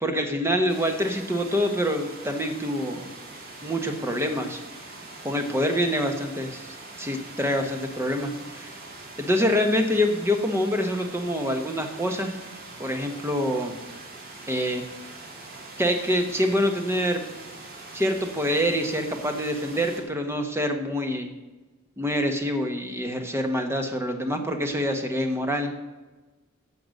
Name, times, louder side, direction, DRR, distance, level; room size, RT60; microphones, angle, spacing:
voice 1, 0.0-3.1 3.6-4.6 5.2-8.7 9.2-12.4 12.8-13.8 14.5-14.8 15.8-17.2 17.9-21.3 22.0-25.7, equal, 10° right, 5 dB, 1.2 m, -26 dB
sound 1, 0.7-20.0, right 2 dB, 45° right, 2.4 m, -43 dB
14.5 x 5.8 x 6.5 m, 1.2 s
head